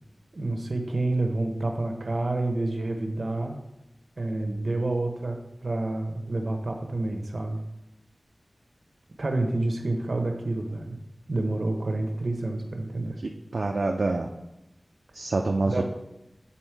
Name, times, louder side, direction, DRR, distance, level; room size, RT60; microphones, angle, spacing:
voice 1, 0.3-3.6 4.2-7.6 9.2-11.0 11.3-13.2 15.7-15.8, right 2 dB, 70° right, 4 dB, 0.9 m, -28 dB
voice 2, 13.5-14.3 15.1-15.8, right 3 dB, 90° right, 2 dB, 0.4 m, -26 dB
7.1 x 4.2 x 4.6 m, 0.91 s
wide cardioid pair, 65°, 0 cm